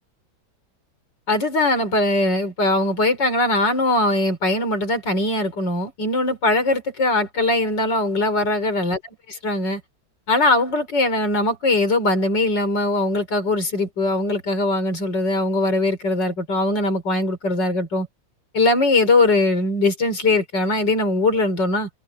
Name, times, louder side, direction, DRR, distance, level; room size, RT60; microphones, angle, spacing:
voice 1, 1.3-9.0 9.3-9.8 10.3-18.1 18.5-21.9, left 2 dB, 70° left, 4.9 m, -21 dB
omnidirectional pair, 2.0 m